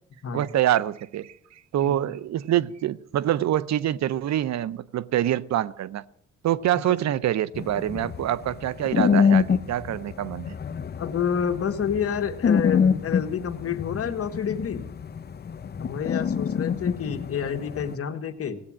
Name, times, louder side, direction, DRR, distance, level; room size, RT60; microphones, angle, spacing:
voice 1, 0.3-1.3 1.7-6.0 6.4-10.6, right 12 dB, 65° right, 0.7 m, -25 dB
sound 1, 7.5-17.9, left 6 dB, 35° left, 0.7 m, -26 dB
voice 2, 11.0-14.9 15.8-18.6, left 7 dB, 50° left, 1.6 m, -29 dB
17.0 x 8.4 x 8.8 m
cardioid pair, 90°, 30 cm